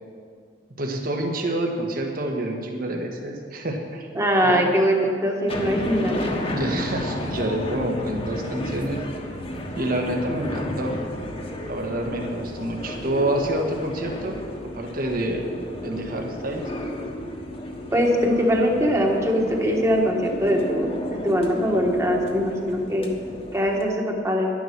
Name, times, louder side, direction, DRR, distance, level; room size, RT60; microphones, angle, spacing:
voice 1, 0.8-4.1 4.4-4.5 6.5-9.0 9.7-11.0 11.7-14.4 14.7-15.4 15.8-16.6 22.7-22.8, right 1 dB, 55° right, 2 dB, 1.5 m, -27 dB
voice 2, 4.1-6.1 17.9-23.1 23.5-24.5, equal, 15° right, 0 dB, 1.4 m, -22 dB
sound 1, 5.5-23.8, left 1 dB, 35° left, 1.3 m, -33 dB
11.0 x 10.0 x 6.0 m, 2.2 s
head